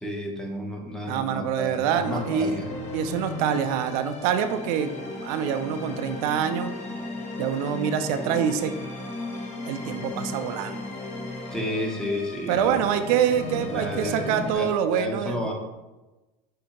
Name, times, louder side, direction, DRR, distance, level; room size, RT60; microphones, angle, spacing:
voice 1, 0.0-2.7 11.5-12.8 13.5-15.5, left 1 dB, 5° left, 0 dB, 0.8 m, -32 dB
voice 2, 1.1-2.6 2.9-4.9 5.2-6.7 7.4-8.7 9.6-10.8 12.5-15.5, right 8 dB, 85° right, 8 dB, 0.4 m, -25 dB
sound 1, 2.0-14.5, left 2 dB, 35° left, 0.9 m, -36 dB
6.4 x 2.7 x 2.9 m, 1.1 s
supercardioid pair, 125°, 19 cm